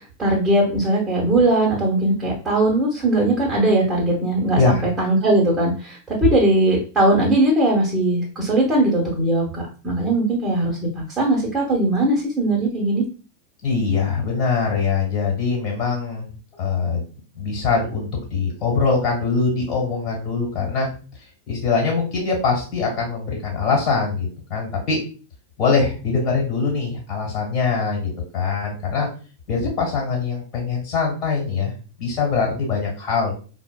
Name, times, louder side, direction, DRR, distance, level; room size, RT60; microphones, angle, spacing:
voice 1, 0.2-13.0, right 1 dB, 10° right, -2 dB, 1.0 m, -19 dB
voice 2, 13.6-16.3 16.6-17.0 17.3-20.9 21.5-25.0 25.6-29.1 29.5-31.7 32.0-33.3, left 4 dB, 35° left, -1 dB, 1.5 m, -22 dB
4.3 x 2.1 x 2.2 m, 0.37 s
figure-of-eight pair, 90°, 0 cm